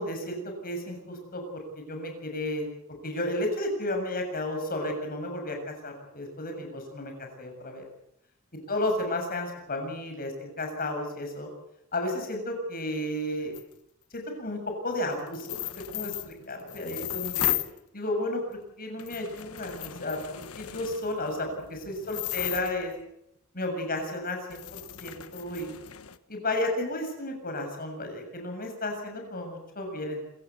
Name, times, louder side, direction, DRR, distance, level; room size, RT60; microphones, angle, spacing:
voice 1, 0.0-2.7 3.0-7.9 8.7-11.5 11.9-13.5 14.1-15.6 15.9-17.6 17.9-22.9 23.5-25.7 26.3-30.2, left 1 dB, 45° left, 4 dB, 7.1 m, -33 dB
sound 1, 13.5-13.6 15.3-17.8 18.5-18.6 19.0-23.0 24.0-24.1 24.5-26.2, left 12 dB, 85° left, 1.2 m, -35 dB
26.5 x 16.0 x 8.3 m, 0.79 s
head